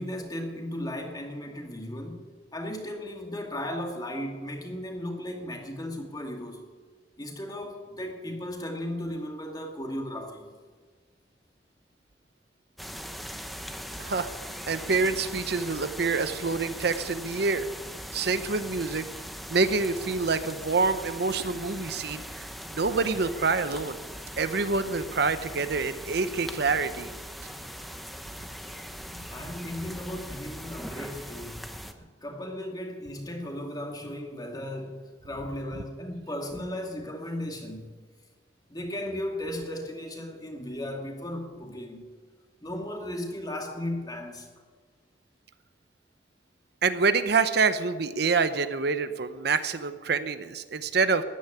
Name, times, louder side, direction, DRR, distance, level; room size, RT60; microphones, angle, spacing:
voice 1, 0.0-6.7 7.2-10.5 29.1-38.0 38.7-42.1 42.6-44.5, left 1 dB, 20° left, 2 dB, 2.4 m, -36 dB
sound 1, 12.8-31.9, equal, ahead, 0.9 m, -40 dB
voice 2, 14.7-17.7 18.1-19.0 19.5-24.0 24.4-27.1 46.8-51.2, right 4 dB, 60° right, 11 dB, 0.8 m, -26 dB
14.0 x 10.5 x 9.9 m, 1.5 s
head